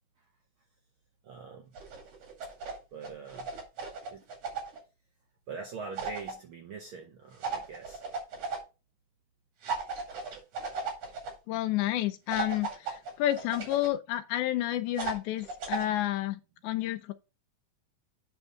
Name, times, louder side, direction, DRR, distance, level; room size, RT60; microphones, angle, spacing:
voice 1, 1.2-1.7 2.9-3.5 4.1-4.2 5.5-8.0, right 5 dB, 70° right, 1.3 m, -43 dB
sound 1, 1.7-2.8 3.0-4.8 6.0-6.3 7.4-8.6 9.6-11.3 12.3-13.9 15.0-15.9, right 4 dB, 85° right, 3.7 m, -36 dB
voice 2, 11.5-17.1, left 14 dB, 85° left, 2.0 m, -30 dB
7.8 x 3.5 x 6.2 m
omnidirectional pair, 3.4 m